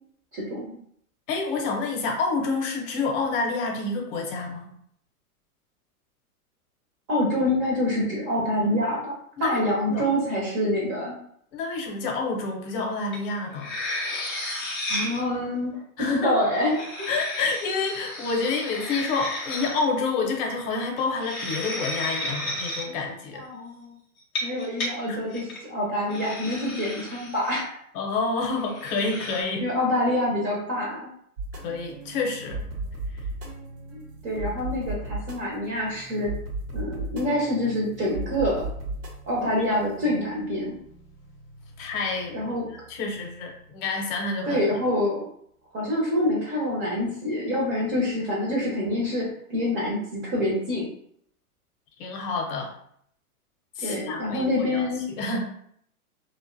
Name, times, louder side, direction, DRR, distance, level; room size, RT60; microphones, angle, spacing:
voice 1, 0.3-0.6 7.1-9.1 9.4-11.2 14.9-15.7 16.1-17.1 22.9-23.0 23.3-23.9 24.4-27.8 29.6-31.1 33.9-36.3 36.7-38.7 39.3-40.8 42.3-42.6 44.5-45.2 45.7-50.9 53.8-55.1, left 1 dB, 30° right, -2 dB, 0.6 m, -26 dB
voice 2, 1.3-4.7 9.4-9.6 9.9-10.0 11.5-13.7 16.0-16.4 17.1-23.4 25.1-25.2 27.9-29.7 31.5-32.6 33.1-33.2 41.8-44.6 52.0-52.7 53.8-54.9 55.2-55.5, left 4 dB, 40° left, 2 dB, 0.7 m, -28 dB
sound 1, 13.1-13.2 13.5-15.2 16.5-19.8 21.0-22.8 24.2-24.9 25.3-25.6 26.1-27.6 28.7-29.4, left 1 dB, 15° left, 0.3 m, -33 dB
sound 2, 31.4-43.9, right 2 dB, 70° right, 0.9 m, -37 dB
2.4 x 2.2 x 2.5 m, 0.67 s
hypercardioid pair, 115°, 45 cm